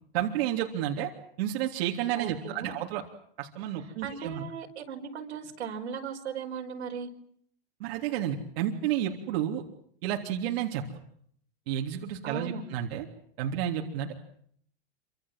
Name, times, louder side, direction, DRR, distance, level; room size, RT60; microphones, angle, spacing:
voice 1, 0.1-1.1 1.4-3.0 3.4-4.4 7.8-9.6 10.0-11.0 11.7-13.1 13.4-14.1, right 10 dB, 65° right, 1 dB, 3.5 m, -31 dB
voice 2, 2.2-2.7 4.0-7.1 12.2-12.6, right 6 dB, 90° right, 2 dB, 5.4 m, -37 dB
27.0 x 26.0 x 7.6 m, 0.68 s
supercardioid pair, 130°, 33 cm